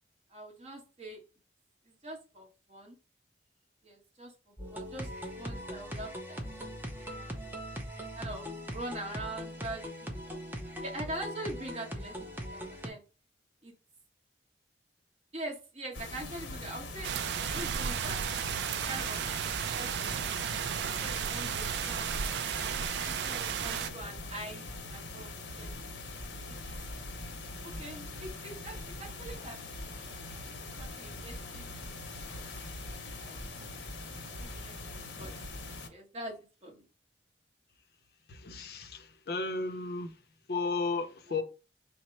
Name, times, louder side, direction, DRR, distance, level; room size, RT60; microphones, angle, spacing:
voice 1, 0.3-1.2 1.9-3.0 3.8-5.1 5.4-6.4 7.1-7.5 8.1-10.4 10.8-13.0 13.6-13.7 15.3-18.2 18.7-19.2 19.7-20.2 21.0-22.1 23.1-25.7 26.5-26.6 27.4-29.6 30.3-30.5 30.8-31.7 32.3-32.4 32.8-32.9 33.2-33.8 34.3-35.3 35.9-36.9 41.3-41.4, right 1 dB, 35° right, 1.2 m, -43 dB
sound 1, 4.6-12.9, equal, 10° right, 0.6 m, -40 dB
Silent Room, 15.9-35.9, left 2 dB, 85° left, 0.8 m, -42 dB
sound 2, 17.0-23.9, right 8 dB, 70° right, 0.3 m, -34 dB
voice 2, 38.3-40.1 40.5-41.4, left 3 dB, 60° left, 0.6 m, -34 dB
4.1 x 2.0 x 4.4 m
head